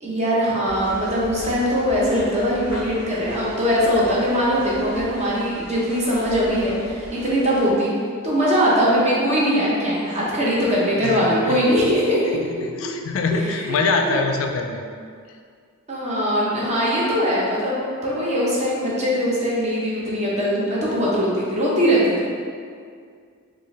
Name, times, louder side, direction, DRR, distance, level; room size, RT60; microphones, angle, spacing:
voice 1, 0.0-7.9 8.2-12.4 13.3-14.2 15.9-22.3, equal, 30° right, -6 dB, 0.9 m, -21 dB
sound 1, 0.6-7.7, equal, 10° right, 1.4 m, -39 dB
voice 2, 11.0-11.7 12.3-14.8, left 4 dB, 65° left, 4 dB, 0.3 m, -24 dB
4.4 x 2.6 x 3.3 m, 2.1 s
head